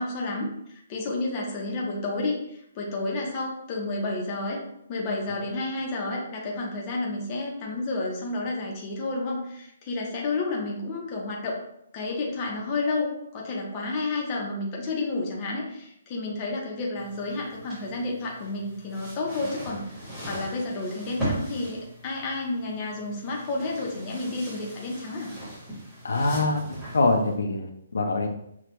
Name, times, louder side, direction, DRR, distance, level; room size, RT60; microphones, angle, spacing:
voice 1, 0.0-4.6 4.9-11.6 11.9-21.8 22.0-25.3, left 2 dB, 20° left, -2 dB, 0.6 m, -31 dB
sound 1, 16.9-27.3, right 1 dB, 5° right, 1.1 m, -39 dB
voice 2, 26.0-28.3, left 2 dB, 80° left, 4 dB, 0.7 m, -24 dB
5.9 x 2.2 x 3.1 m, 0.74 s
hypercardioid pair, 180°, 0 cm